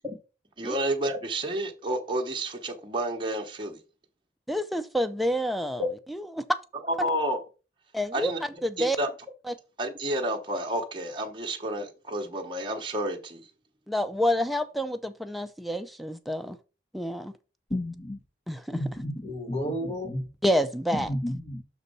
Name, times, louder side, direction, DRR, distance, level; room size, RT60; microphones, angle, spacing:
voice 1, 0.6-3.8 5.8-5.9 7.0-7.4 8.1-8.4 8.8-9.1 9.8-13.5, right 1 dB, 25° right, 1.0 m, -30 dB
voice 2, 4.5-5.8 6.1-6.4 7.0-7.1 7.9-8.3 8.6-9.0 9.5-9.6 13.9-16.6 16.9-17.3 18.5-18.8 20.4-21.1, equal, ahead, 0.5 m, -28 dB
voice 3, 17.7-18.2 18.7-20.3 20.9-21.6, left 1 dB, 35° left, 1.2 m, -31 dB
6.2 x 4.1 x 5.4 m
head